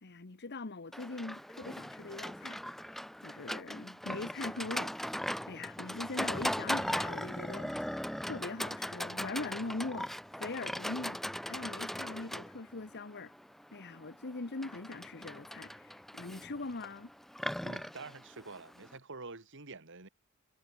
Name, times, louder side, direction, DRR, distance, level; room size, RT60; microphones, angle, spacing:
voice 1, 0.0-2.6 3.2-5.0 5.5-7.7 8.2-13.3 13.7-17.1, left 3 dB, 50° left, 1.2 m, -41 dB
Livestock farm animals working animals, 0.9-19.0, equal, ahead, 0.3 m, -39 dB
voice 2, 17.6-20.1, right 3 dB, 60° right, 2.6 m, -47 dB
head